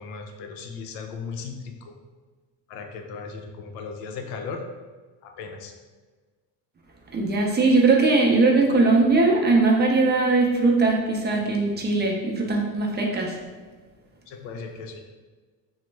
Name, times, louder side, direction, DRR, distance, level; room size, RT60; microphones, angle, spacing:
voice 1, 0.0-1.9 2.7-4.6 5.2-5.7 14.3-15.0, left 5 dB, 85° left, 4 dB, 0.5 m, -36 dB
voice 2, 7.1-13.3, right 3 dB, 25° right, -1 dB, 0.5 m, -20 dB
2.9 x 2.1 x 3.2 m, 1.4 s
supercardioid pair, 100°, 40 cm